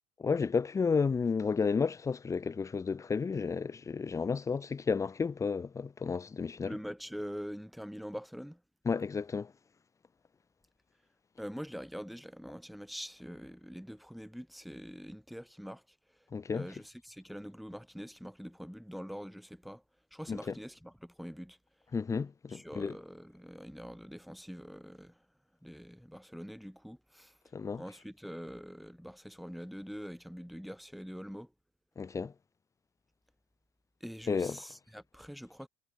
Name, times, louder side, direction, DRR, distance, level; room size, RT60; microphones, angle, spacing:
voice 1, 0.2-6.7 8.8-9.5 16.3-16.7 20.3-20.5 21.9-23.0 27.5-27.8 32.0-32.3 34.3-34.6, left 5 dB, 20° left, 1.1 m, -32 dB
voice 2, 6.6-8.6 11.4-19.8 20.1-21.9 22.5-25.3 25.6-27.4 27.8-31.5 34.0-35.7, equal, ahead, 2.9 m, -44 dB
supercardioid pair, 125°, 17 cm